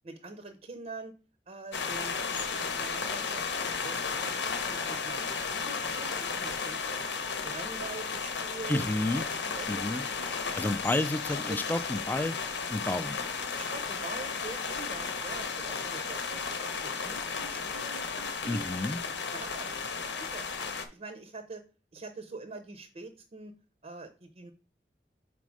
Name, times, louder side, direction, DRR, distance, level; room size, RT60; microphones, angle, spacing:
voice 1, 0.0-1.1 1.5-7.0 7.4-10.6 13.6-18.7 19.3-19.7 20.2-20.4 20.9-21.6 21.9-23.5 23.8-24.5, right 3 dB, 40° right, 8 dB, 0.6 m, -45 dB
sound 1, 1.7-20.8, left 5 dB, 85° left, 0.9 m, -34 dB
voice 2, 8.7-9.3 9.7-10.1 10.5-12.4 12.7-13.2 18.5-19.0, left 2 dB, 10° left, 13 dB, 0.3 m, -30 dB
5.1 x 4.2 x 4.7 m, 0.37 s
head